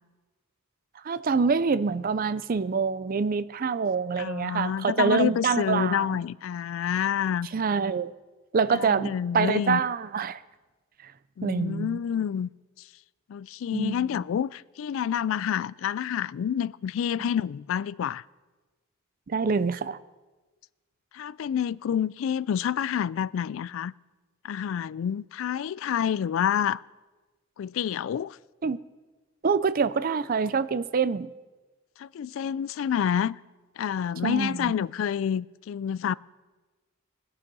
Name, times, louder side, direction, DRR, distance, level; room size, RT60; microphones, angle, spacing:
voice 1, 1.0-6.2 7.5-8.1 8.5-10.4 11.4-12.0 13.7-14.1 19.3-20.0 28.6-28.8 29.4-31.3 34.2-34.7, right 5 dB, 45° right, 0.4 m, -26 dB
voice 2, 4.2-7.5 8.7-9.8 11.4-12.5 13.3-18.2 21.1-23.9 24.4-26.8 27.6-28.4 32.0-33.4 33.8-36.1, left 8 dB, 70° left, 0.3 m, -28 dB
21.0 x 7.0 x 5.4 m
head